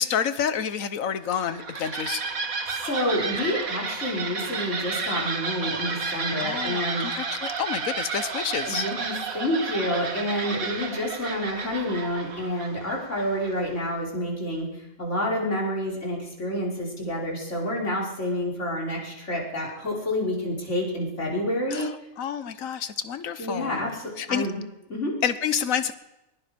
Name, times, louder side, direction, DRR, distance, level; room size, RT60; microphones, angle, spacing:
voice 1, 0.0-2.2 6.4-8.8 21.7-24.5 25.2-25.9, left 8 dB, 70° left, 12 dB, 1.4 m, -29 dB
sound 1, 1.3-13.8, right 4 dB, 85° right, 2.1 m, -32 dB
voice 2, 2.8-7.1 8.7-14.7 15.0-21.9 23.4-24.6 24.9-25.2, left 1 dB, 55° left, -2 dB, 5.5 m, -28 dB
22.5 x 22.0 x 5.2 m, 0.94 s
omnidirectional pair, 1.4 m